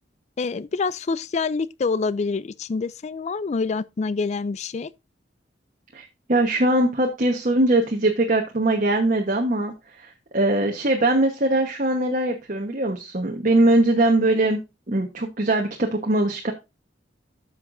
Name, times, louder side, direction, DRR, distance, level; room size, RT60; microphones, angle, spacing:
voice 1, 0.4-4.9, left 4 dB, 40° left, 0.4 m, -26 dB
voice 2, 5.9-14.6 14.9-16.5, right 1 dB, 45° right, 1.1 m, -21 dB
12.5 x 5.8 x 2.6 m
head